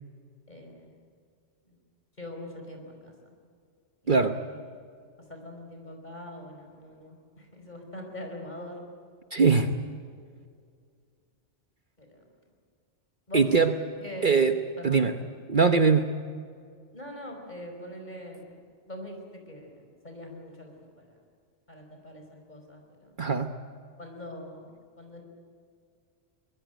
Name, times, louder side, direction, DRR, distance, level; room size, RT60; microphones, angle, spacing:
voice 1, 0.5-1.0 1.6-1.8 2.2-3.4 4.0-4.8 5.3-8.8 12.0-12.2 13.3-13.5 14.0-15.1 16.9-18.5 18.9-21.2 21.7-23.2 24.0-25.2, left 1 dB, 35° left, 3 dB, 5.0 m, -43 dB
voice 2, 4.1-4.4 9.3-9.7 13.3-13.7 14.2-14.5 14.8-15.1 15.5-16.1 23.2-23.5, right 5 dB, 45° right, 7 dB, 1.1 m, -21 dB
23.5 x 20.5 x 9.2 m, 2.2 s
omnidirectional pair, 1.2 m